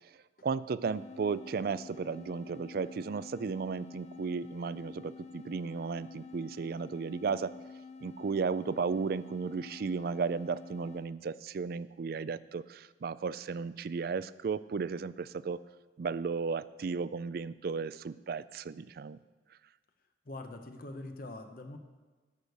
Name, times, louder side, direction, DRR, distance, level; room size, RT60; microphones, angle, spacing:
voice 1, 0.4-7.5 8.0-15.6 16.0-19.2, right 5 dB, 55° right, 17 dB, 0.4 m, -34 dB
sound 1, 0.8-11.2, left 4 dB, 40° left, 0.4 m, -49 dB
voice 2, 20.3-21.8, left 2 dB, 55° left, 6 dB, 0.8 m, -43 dB
12.5 x 6.4 x 6.6 m, 1.3 s
head